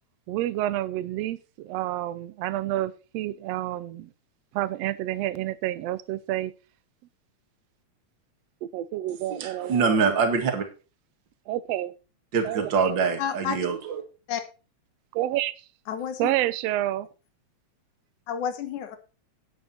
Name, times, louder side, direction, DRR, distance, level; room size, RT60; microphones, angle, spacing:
voice 1, 0.3-4.1 4.5-6.5 8.6-10.0 11.5-11.9 12.4-12.7 15.1-15.7 16.2-17.1, right 14 dB, 75° right, 1.7 m, -29 dB
voice 2, 9.3-10.7 12.3-14.0, right 5 dB, 40° right, 2.5 m, -24 dB
voice 3, 13.2-13.6 14.3-14.4 15.9-16.3 18.3-19.0, left 8 dB, 85° left, 2.8 m, -30 dB
10.5 x 9.4 x 4.2 m
omnidirectional pair, 3.3 m